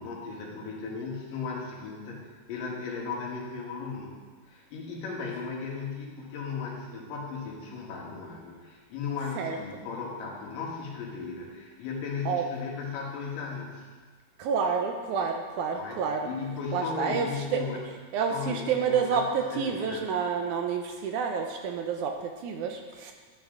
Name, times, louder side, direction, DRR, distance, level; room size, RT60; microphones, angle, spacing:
voice 1, 0.0-4.2 4.5-13.9 15.7-17.8 18.3-19.2 19.5-20.0, left 5 dB, 80° left, -2 dB, 3.3 m, -36 dB
voice 2, 14.4-16.3 16.7-17.6 18.1-23.1, right 6 dB, 75° right, 4 dB, 2.0 m, -29 dB
11.5 x 9.1 x 3.8 m, 1.5 s
omnidirectional pair, 3.8 m